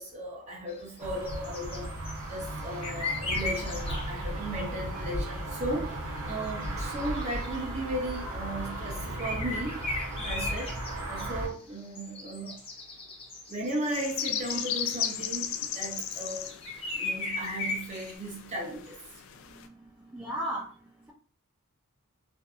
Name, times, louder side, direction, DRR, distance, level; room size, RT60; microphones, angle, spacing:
voice 1, 0.0-2.0 2.3-6.0 6.3-9.8 10.2-10.7 11.1-12.6 13.5-16.5 16.9-19.0, right 1 dB, 30° right, 0.8 m, -36 dB
sound 1, 0.7-4.2 4.6-5.0 5.6-5.7 6.5-7.8 9.2-15.3 15.8-18.2, left 3 dB, 25° left, 0.7 m, -37 dB
sound 2, 1.0-11.5, right 1 dB, 75° right, 0.8 m, -36 dB
sound 3, 13.9-19.7, left 9 dB, 60° left, 0.3 m, -36 dB
voice 2, 20.0-20.7, right 1 dB, 10° right, 0.4 m, -35 dB
2.6 x 2.6 x 2.4 m
head